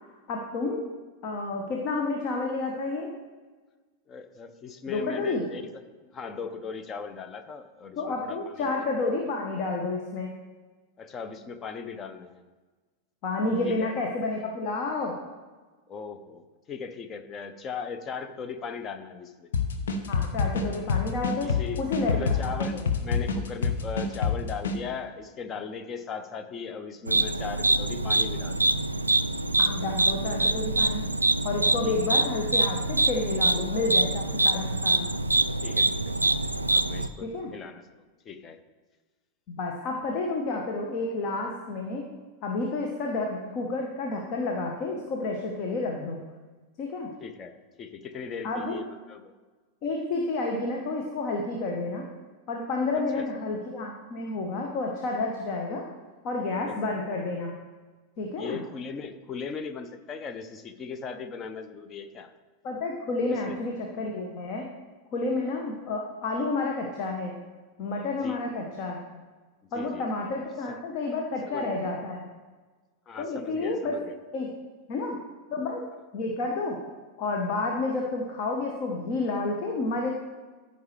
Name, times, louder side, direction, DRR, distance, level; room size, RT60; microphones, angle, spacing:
voice 1, 0.3-0.8 1.2-3.1 4.9-5.4 8.0-10.3 13.2-15.2 20.1-22.8 29.6-31.0 31.4-35.1 37.2-37.5 39.5-42.0 42.4-46.2 46.8-47.1 48.4-48.8 49.8-52.0 52.5-55.8 56.2-57.5 58.2-58.6 62.6-64.6 65.1-67.4 67.8-69.0 69.7-72.2 73.2-74.1 74.3-74.5 74.9-75.2 75.5-75.8 76.1-76.8 77.2-80.1, left 3 dB, 40° left, 1 dB, 1.1 m, -30 dB
voice 2, 4.1-5.6 6.1-8.8 11.0-12.5 13.6-14.0 15.9-19.5 21.4-28.6 31.8-32.0 34.5-34.6 35.6-36.1 36.4-37.9 38.2-38.6 47.2-49.3 52.9-53.3 56.6-56.8 58.3-62.3 63.3-63.6 68.2-68.4 69.7-70.1 70.7-70.8 71.5-71.7 73.1-74.1, left 5 dB, 25° left, 9 dB, 0.7 m, -38 dB
sound 1, 19.5-24.8, left 5 dB, 65° left, 0.9 m, -27 dB
sound 2, 27.1-37.1, right 2 dB, 85° right, 0.3 m, -25 dB
14.5 x 5.4 x 3.3 m, 1.3 s
figure-of-eight pair, 90°, 0 cm